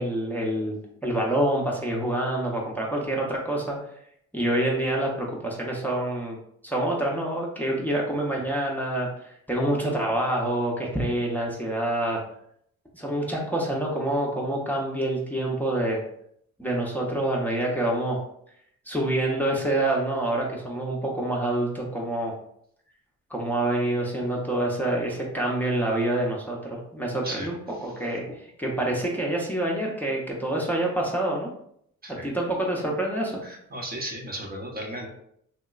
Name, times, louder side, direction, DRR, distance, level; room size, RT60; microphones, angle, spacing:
voice 1, 0.0-3.8 4.3-6.4 6.6-12.2 12.9-16.0 16.6-18.2 18.9-22.3 23.3-31.5 32.2-33.4, right 1 dB, 5° left, -3 dB, 0.6 m, -27 dB
voice 2, 33.4-35.1, right 1 dB, 30° right, 1 dB, 0.7 m, -35 dB
3.0 x 2.9 x 2.3 m, 0.69 s
cardioid pair, 90°, 30 cm